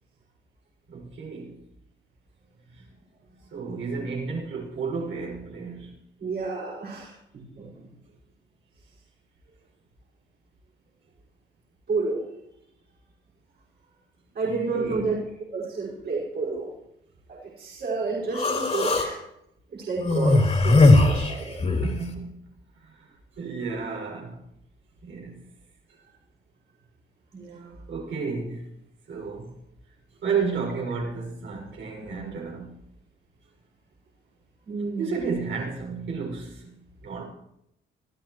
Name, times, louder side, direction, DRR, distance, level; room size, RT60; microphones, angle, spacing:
voice 1, 0.9-1.6 3.5-6.0 14.4-15.1 21.8-22.4 22.8-24.4 25.0-25.4 27.9-28.7 29.1-29.5 30.2-32.8 35.0-36.8 37.0-37.2, right 5 dB, 70° right, 6.6 m, -32 dB
voice 2, 6.2-7.9 11.9-12.2 14.3-15.2 15.5-16.7 17.3-19.2 19.7-21.7 27.3-27.8 34.7-35.2, right 4 dB, 55° right, 5.6 m, -30 dB
Human voice, 18.3-19.1 20.0-22.0, left 2 dB, 35° left, 3.4 m, -19 dB
25.5 x 14.5 x 3.2 m
cardioid pair, 90°, 20 cm